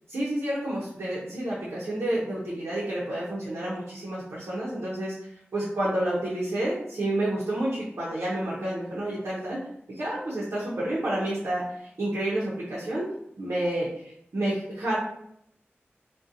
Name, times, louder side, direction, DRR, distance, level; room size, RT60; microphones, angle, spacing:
voice 1, 0.1-5.1 5.5-9.6 9.9-13.1 13.4-13.9 14.3-15.0, right 1 dB, 85° right, -7 dB, 0.6 m, -29 dB
2.6 x 2.1 x 2.5 m, 0.74 s
wide cardioid pair, 50°, 4 cm